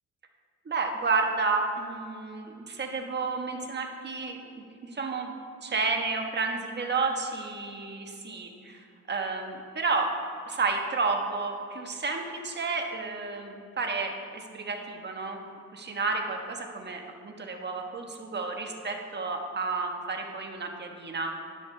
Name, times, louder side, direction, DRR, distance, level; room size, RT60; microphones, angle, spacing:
voice 1, 0.6-5.3 5.6-10.1 10.5-15.4 15.7-21.3, right 4 dB, 35° right, 3 dB, 1.4 m, -31 dB
10.5 x 10.0 x 3.5 m, 2.5 s
cardioid pair, 90°, 30 cm